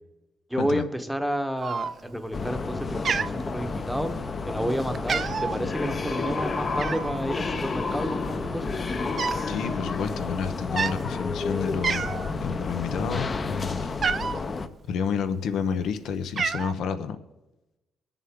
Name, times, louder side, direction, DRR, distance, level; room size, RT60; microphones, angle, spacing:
voice 1, 0.5-4.2 4.5-8.7, equal, ahead, 9 dB, 1.0 m, -30 dB
Cat, 1.6-2.2 2.6-2.8 3.0-4.1 4.5-4.7 4.9-5.6 6.8-7.2 8.0-8.1 8.3-9.5 9.8-10.0 10.6-11.0 11.5-11.6 11.8-12.3 12.8-14.4 15.2-15.8 16.1-16.7, right 5 dB, 45° right, 0.5 m, -29 dB
sound 1, 2.3-14.7, left 4 dB, 35° left, 0.7 m, -30 dB
voice 2, 9.5-12.1 12.4-13.9 14.9-17.2, left 6 dB, 80° left, 9 dB, 0.8 m, -30 dB
21.5 x 7.2 x 3.7 m, 1.0 s
cardioid pair, 90°, 0 cm